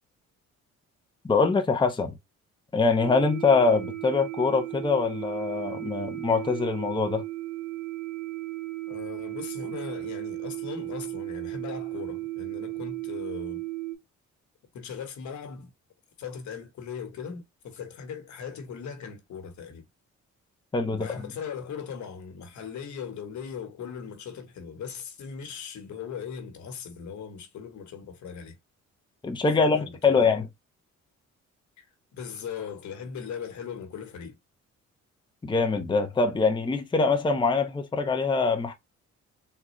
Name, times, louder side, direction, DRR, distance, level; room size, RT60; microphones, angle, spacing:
voice 1, 1.2-2.1 2.7-7.2 20.7-21.3 29.2-30.5 35.4-38.7, left 4 dB, 15° left, 0.7 m, -24 dB
sound 1, 3.0-14.0, right 18 dB, 60° right, 1.6 m, -35 dB
voice 2, 8.9-13.6 14.7-15.7 16.2-19.8 20.9-28.6 29.6-30.3 31.8-31.9 32.1-34.4, left 7 dB, 70° left, 1.2 m, -39 dB
3.7 x 2.2 x 3.1 m
cardioid pair, 90°, 30 cm